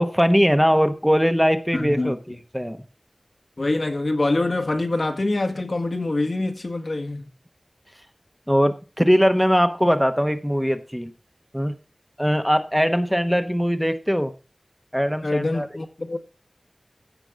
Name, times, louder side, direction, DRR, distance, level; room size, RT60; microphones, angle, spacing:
voice 1, 0.0-2.8 8.5-11.1 11.5-11.8 12.2-14.3 14.9-15.7, equal, ahead, 1.0 m, -21 dB
voice 2, 1.7-2.1 3.6-7.3 15.2-16.2, left 2 dB, 70° left, 1.8 m, -25 dB
16.0 x 5.4 x 5.1 m
wide cardioid pair, 50°, 0 cm